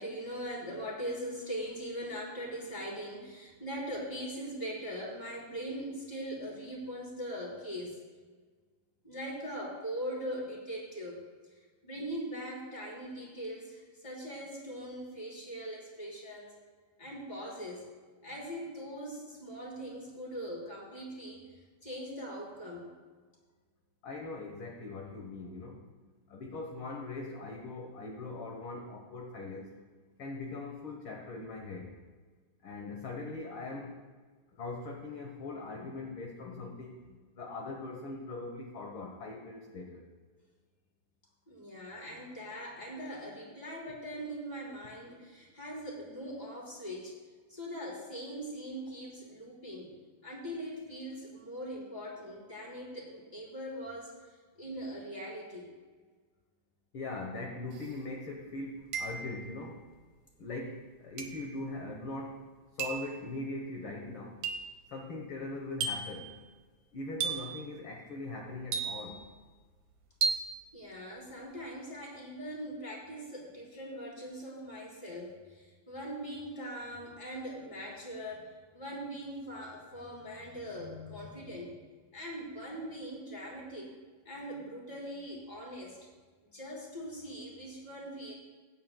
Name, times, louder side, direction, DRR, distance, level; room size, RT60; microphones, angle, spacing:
voice 1, 0.0-8.0 9.0-11.2 11.8-16.5 17.0-17.9 18.2-22.9 41.5-47.2 47.5-50.0 50.2-54.1 54.6-55.7 70.7-81.7 82.1-83.9 84.2-86.1 86.4-88.4, equal, 15° left, -3 dB, 2.8 m, -41 dB
voice 2, 24.0-25.8 26.3-29.8 30.2-31.9 32.6-34.0 34.6-40.1 56.9-59.8 60.4-62.5 62.8-64.4 64.9-66.3 66.9-69.2, left 2 dB, 60° left, 0 dB, 1.5 m, -41 dB
sound 1, 57.8-57.9 58.9-59.5 61.2-61.5 62.8-63.1 64.4-64.8 65.8-66.2 67.2-67.6 68.7-69.3 70.2-70.6, right 5 dB, 65° right, 1.6 m, -34 dB
21.5 x 9.4 x 2.2 m, 1.5 s
omnidirectional pair, 3.5 m